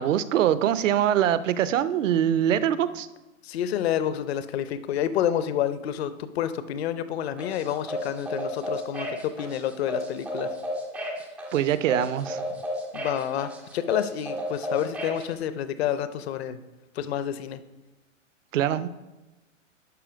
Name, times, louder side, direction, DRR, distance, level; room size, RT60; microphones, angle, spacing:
voice 1, 0.0-3.1 11.5-12.4 18.5-18.9, right 10 dB, 70° right, 15 dB, 0.7 m, -23 dB
voice 2, 3.4-10.5 12.9-16.6 16.9-17.6, left 10 dB, 50° left, 13 dB, 0.7 m, -29 dB
sound 1, 7.4-15.2, equal, 5° right, 0.3 m, -33 dB
11.5 x 4.3 x 5.1 m, 1.1 s
hypercardioid pair, 135°, 40 cm